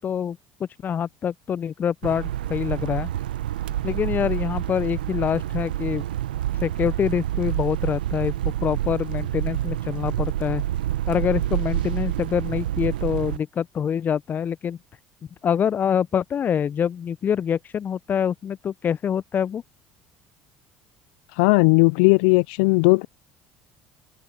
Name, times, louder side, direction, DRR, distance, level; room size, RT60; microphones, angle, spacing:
voice 1, 0.0-3.1 3.8-6.0 6.6-10.6 11.1-14.8 15.4-19.6, left 8 dB, 40° left, 0.8 m, -25 dB
sound 1, 2.0-13.4, right 13 dB, 80° right, 1.1 m, -27 dB
voice 2, 21.3-23.1, left 30 dB, 70° left, 0.3 m, -17 dB
hypercardioid pair, 65°, 5 cm